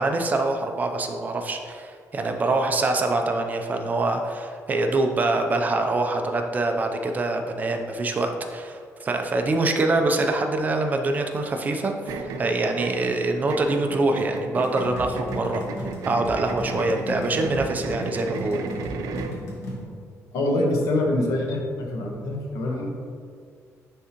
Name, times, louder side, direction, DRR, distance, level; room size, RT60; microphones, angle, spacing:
voice 1, 0.0-15.6 16.0-18.7, right 2 dB, 30° right, 4 dB, 0.5 m, -25 dB
sound 1, 12.1-19.4, right 5 dB, 85° right, 0.5 m, -35 dB
sound 2, 14.6-19.8, equal, 60° left, 1.3 m, -35 dB
voice 2, 20.3-22.9, left 1 dB, 85° left, 0 dB, 1.1 m, -25 dB
9.7 x 3.6 x 2.9 m, 2.2 s
cardioid pair, 155°, 6 cm